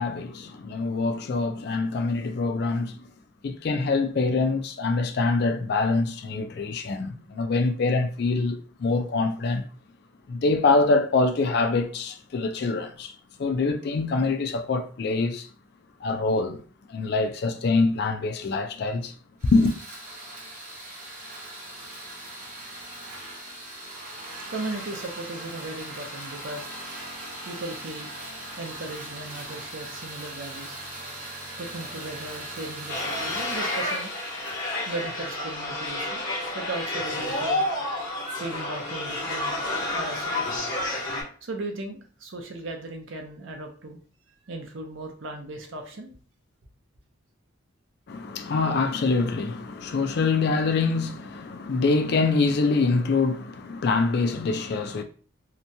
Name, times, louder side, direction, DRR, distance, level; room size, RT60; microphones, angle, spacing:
voice 1, 0.0-3.1 3.4-9.7 10.3-13.1 13.4-15.5 16.0-16.6 16.9-19.1 19.5-19.7 48.1-55.0, left 3 dB, 55° left, 0.3 m, -25 dB
sound 1, 19.4-35.6, right 1 dB, 40° right, 0.9 m, -40 dB
voice 2, 24.5-26.7 27.4-28.1 28.6-30.7 31.6-34.1 34.9-36.2 36.5-37.6 38.4-40.6 41.4-44.0 44.5-46.1, right 2 dB, 70° right, 0.6 m, -37 dB
sound 2, 32.9-41.2, left 1 dB, 75° left, 1.0 m, -30 dB
2.8 x 2.2 x 2.6 m
head